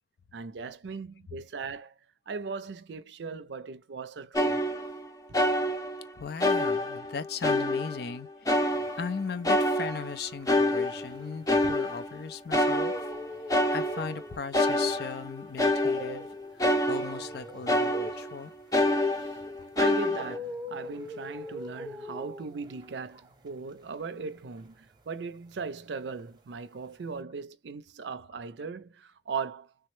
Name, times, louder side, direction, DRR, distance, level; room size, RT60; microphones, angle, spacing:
voice 1, 0.3-1.9 2.3-4.6 5.3-5.4 19.8-29.7, right 5 dB, 75° right, 0.5 m, -38 dB
sound 1, 4.3-5.1 5.3-6.1 6.4-8.1 8.4-9.2 9.4-12.2 12.5-14.2 14.5-17.4 17.7-18.4 18.7-20.4, left 1 dB, 20° left, 0.6 m, -27 dB
voice 2, 6.2-8.7 9.0-12.9 13.7-16.3 16.6-18.5, left 5 dB, 60° left, 0.4 m, -37 dB
sound 2, 8.8-12.1 12.4-25.9 26.1-27.2, left 1 dB, 25° right, 0.7 m, -44 dB
3.4 x 2.0 x 3.1 m
head